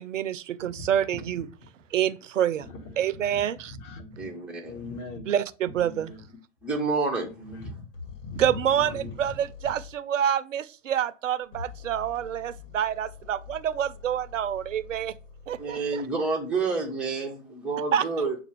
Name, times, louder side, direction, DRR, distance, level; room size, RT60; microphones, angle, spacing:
voice 1, 0.0-1.4 1.9-2.7 3.0-3.6 5.3-6.1 8.4-15.1 15.5-16.0 17.9-18.0, right 10 dB, 70° right, 0.5 m, -27 dB
voice 2, 1.1-1.7 2.5-4.3 4.6-5.3 5.7-6.3 7.2-9.3 9.6-9.7, left 2 dB, 25° left, 0.8 m, -41 dB
voice 3, 4.2-4.7 6.6-7.3 15.6-18.4, right 4 dB, 5° right, 0.4 m, -29 dB
sound 1, 7.9-9.9 11.4-15.8, left 6 dB, 70° left, 1.8 m, -45 dB
6.7 x 2.3 x 3.0 m
figure-of-eight pair, 105°, 39 cm